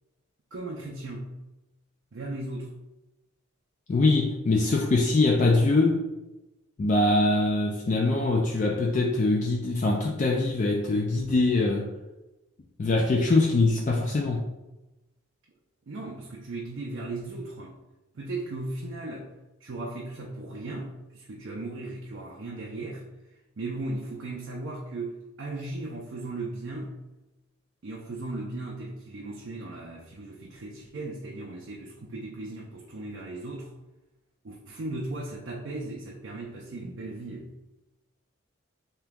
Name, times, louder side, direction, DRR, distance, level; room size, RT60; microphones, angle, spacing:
voice 1, 0.5-1.3 2.1-2.7 15.9-17.7 18.1-19.3 19.6-23.0 23.6-26.9 27.8-33.7 34.4-37.5, right 2 dB, 55° right, -2 dB, 0.5 m, -37 dB
voice 2, 3.9-6.0 6.8-11.9 12.8-14.5, left 2 dB, 35° left, 0 dB, 0.3 m, -23 dB
3.4 x 2.9 x 3.5 m, 1.0 s
head